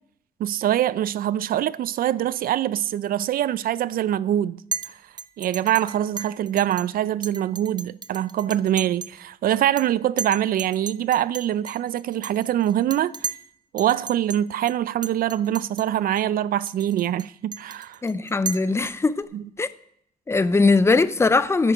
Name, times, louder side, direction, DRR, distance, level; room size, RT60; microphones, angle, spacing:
voice 1, 0.4-4.6 4.9-5.0 5.4-13.3 13.7-18.0 19.3-19.4, right 11 dB, 75° right, 0.4 m, -24 dB
Chink clink, 4.7-4.9 5.2-6.9 7.2-9.2 9.5-9.9 10.2-13.5 13.8-14.4 14.7-14.8 15.0-15.9 16.2-16.3 16.7-19.2, right 5 dB, 30° right, 0.6 m, -35 dB
voice 2, 18.0-19.3 19.6-19.7 20.3-21.7, left 3 dB, 15° left, 0.5 m, -20 dB
10.0 x 9.1 x 4.9 m
cardioid pair, 120°, 15 cm